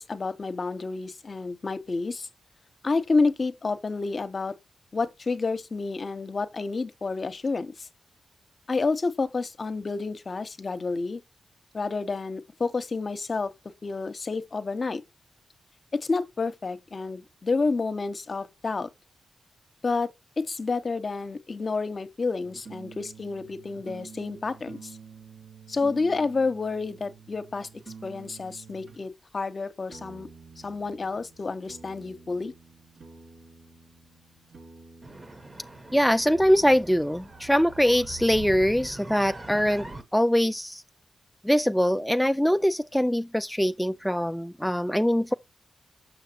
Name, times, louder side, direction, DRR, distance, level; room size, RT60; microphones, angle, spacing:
voice 1, 0.0-2.3 2.8-4.5 4.9-7.9 8.7-11.2 11.7-13.5 13.8-15.0 15.9-18.9 19.8-20.1 20.4-24.9 25.7-27.7 28.0-30.3 30.6-32.5, left 3 dB, 50° left, 0.9 m, -29 dB
sound 1, 22.4-29.1 29.9-37.9, right 5 dB, 90° right, 2.5 m, -49 dB
sound 2, 35.0-40.0, right 2 dB, 30° right, 1.2 m, -42 dB
voice 2, 35.9-40.8 41.4-45.3, equal, 5° left, 0.3 m, -23 dB
6.5 x 5.9 x 2.9 m
cardioid pair, 60°, 0 cm